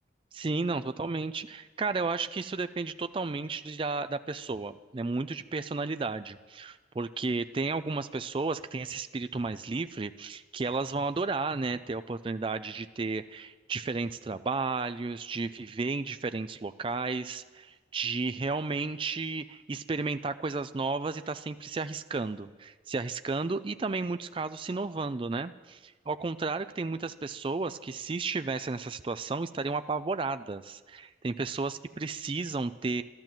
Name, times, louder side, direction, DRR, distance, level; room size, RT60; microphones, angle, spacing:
voice 1, 0.3-33.0, right 3 dB, 30° right, 11 dB, 0.4 m, -33 dB
13.0 x 12.5 x 7.5 m, 1.4 s
head